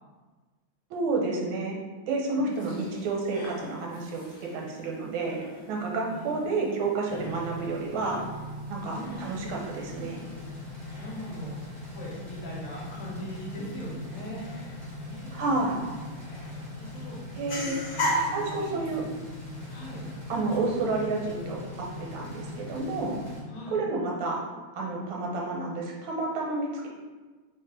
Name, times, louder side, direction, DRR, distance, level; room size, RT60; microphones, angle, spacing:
voice 1, 0.9-1.8 2.1-4.2 4.5-8.2 8.7-10.2 15.3-15.8 17.3-17.8 18.3-19.0 20.3-23.2 23.7-24.4 24.7-26.9, right 3 dB, 75° right, -1 dB, 1.5 m, -30 dB
voice 2, 2.4-2.9 6.1-6.6 8.9-9.6 11.0-11.6 11.9-14.5 15.0-15.7 16.6-19.0 19.7-20.0 23.5-23.8, equal, 90° left, -4 dB, 1.9 m, -41 dB
sound 1, 2.5-20.6, equal, 50° left, 1.3 m, -40 dB
sound 2, 7.1-23.4, left 1 dB, 15° right, 0.8 m, -40 dB
3.7 x 2.4 x 3.8 m, 1.3 s
omnidirectional pair, 2.3 m